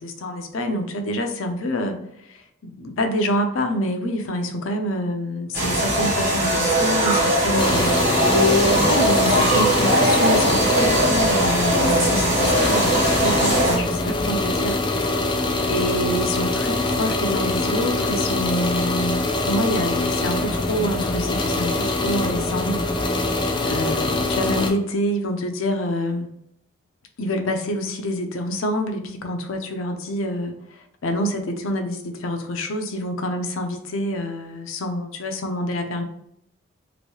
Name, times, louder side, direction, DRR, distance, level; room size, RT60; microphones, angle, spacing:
voice 1, 0.0-8.0 8.8-14.8 15.7-22.8 23.6-26.3 27.2-36.0, left 1 dB, 80° left, 5 dB, 0.5 m, -27 dB
sound 1, 5.5-13.8, right 1 dB, 40° right, 1.1 m, -20 dB
sound 2, 7.6-24.7, left 2 dB, 20° left, 0.4 m, -24 dB
3.0 x 2.6 x 2.9 m, 0.75 s
head